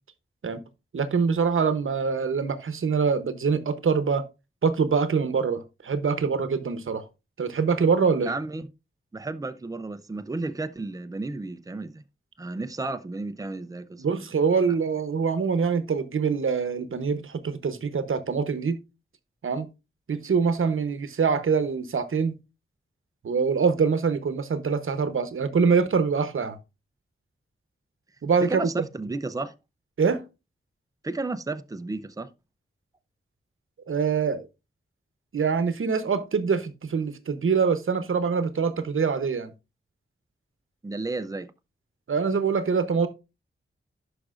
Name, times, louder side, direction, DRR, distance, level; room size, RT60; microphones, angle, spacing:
voice 1, 0.9-4.2 4.6-7.0 7.4-8.3 14.0-18.8 19.4-19.7 20.1-22.3 23.2-26.6 28.2-28.6 30.0-30.2 33.9-34.5 35.3-39.5 42.1-43.1, right 5 dB, 75° right, 0.8 m, -24 dB
voice 2, 8.2-8.7 9.1-12.0 12.4-14.3 14.6-14.7 28.4-29.5 31.0-32.3 40.8-41.5, right 2 dB, 15° right, 0.5 m, -33 dB
11.0 x 5.0 x 2.4 m
wide cardioid pair, 105°, 21 cm